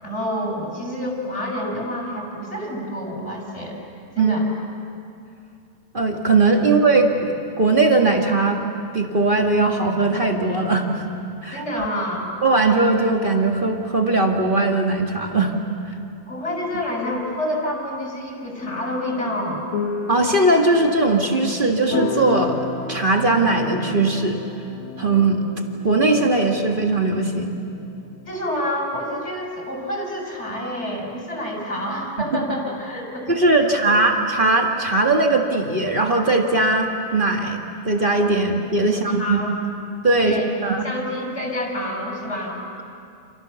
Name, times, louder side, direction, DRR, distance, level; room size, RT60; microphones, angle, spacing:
voice 1, 0.0-3.8 4.1-4.5 11.5-12.2 16.3-19.6 28.3-33.3 33.6-34.0 38.8-39.6 40.2-42.6, left 1 dB, 15° left, 0 dB, 6.3 m, -28 dB
voice 2, 5.9-8.6 8.9-11.1 11.4-11.9 12.4-15.5 20.1-22.6 22.9-24.4 25.0-25.4 25.8-27.5 33.3-37.6 37.8-39.4 40.0-40.8, right 2 dB, 40° right, 1 dB, 0.7 m, -19 dB
sound 1, 18.6-28.3, left 4 dB, 80° left, 3.9 m, -33 dB
29.5 x 28.0 x 7.0 m, 2.5 s
omnidirectional pair, 4.1 m